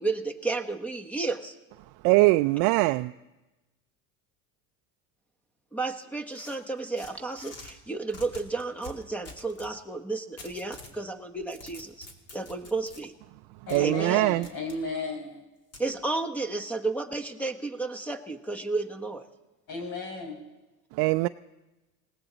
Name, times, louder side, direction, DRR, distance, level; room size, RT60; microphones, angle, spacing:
voice 1, 0.0-1.6 5.7-12.1 12.3-13.1 13.8-14.2 15.8-19.2, right 3 dB, 5° left, 1.0 m, -32 dB
voice 2, 2.0-3.1 13.7-14.5 20.9-21.3, right 20 dB, 60° right, 0.5 m, -22 dB
sound 1, 6.3-7.7 8.1-9.7 10.4-11.0 11.4-13.0 13.7-13.8 14.4-14.8 15.7-15.9, left 2 dB, 35° left, 2.6 m, -46 dB
voice 3, 13.7-15.4 19.7-20.4, left 3 dB, 55° left, 5.6 m, -34 dB
19.5 x 16.5 x 4.0 m
supercardioid pair, 110°, 41 cm